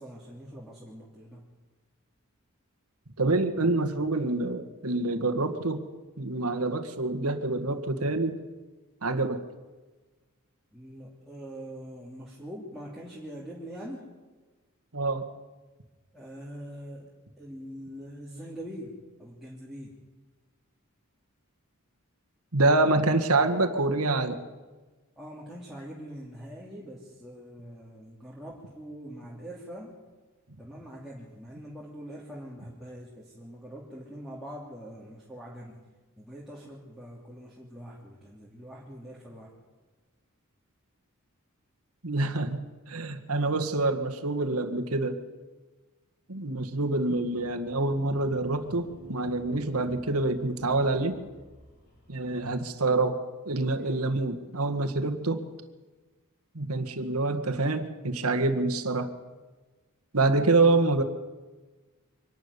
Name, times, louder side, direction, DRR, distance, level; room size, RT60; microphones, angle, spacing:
voice 1, 0.0-1.5 10.7-14.1 16.1-17.1 17.4-19.9 25.2-29.9 30.6-35.8 36.2-39.5 53.8-54.3, equal, ahead, -6 dB, 2.9 m, -43 dB
voice 2, 3.2-5.9 6.2-8.4 9.0-9.4 14.9-15.3 22.5-24.4 42.0-42.6 42.9-45.2 46.3-51.2 52.1-53.2 53.5-55.4 56.5-59.1 60.1-61.0, right 2 dB, 90° right, 6 dB, 1.8 m, -26 dB
sound 1, 47.3-52.6, left 1 dB, 45° left, 5.3 m, -55 dB
24.5 x 12.0 x 9.9 m, 1.3 s
head